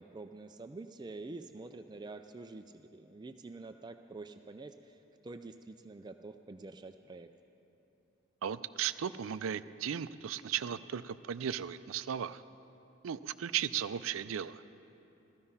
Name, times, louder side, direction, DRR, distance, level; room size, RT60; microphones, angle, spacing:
voice 1, 0.0-7.3, right 3 dB, 20° right, 7 dB, 0.4 m, -47 dB
voice 2, 8.4-12.4 13.0-14.6, right 9 dB, 85° right, 14 dB, 0.4 m, -36 dB
15.0 x 14.0 x 5.6 m, 3.0 s
head